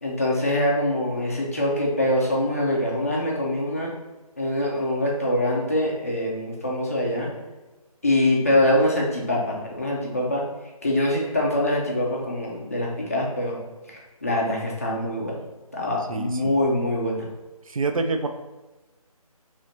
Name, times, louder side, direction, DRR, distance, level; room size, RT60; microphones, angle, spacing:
voice 1, 0.0-3.9 4.4-7.3 8.0-10.4 10.8-13.6 13.9-15.4 15.7-17.3, left 1 dB, 25° left, -3 dB, 0.5 m, -24 dB
voice 2, 16.1-16.5 17.7-18.3, right 3 dB, 60° right, 6 dB, 0.5 m, -26 dB
3.1 x 3.1 x 3.9 m, 1.2 s
figure-of-eight pair, 170°, 19 cm